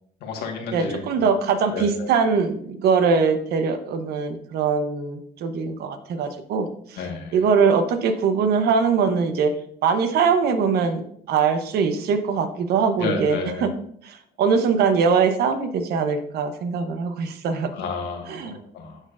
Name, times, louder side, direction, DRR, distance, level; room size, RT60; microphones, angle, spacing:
voice 1, 0.2-1.2 1.7-2.1 7.0-7.4 13.0-13.7 17.7-19.0, left 4 dB, 80° left, 2 dB, 1.5 m, -31 dB
voice 2, 0.7-7.0 7.3-9.5 9.8-13.7 14.0-17.7 18.3-18.6, right 5 dB, 70° right, 8 dB, 0.9 m, -22 dB
11.5 x 4.1 x 2.5 m, 0.65 s
cardioid pair, 110°, 17 cm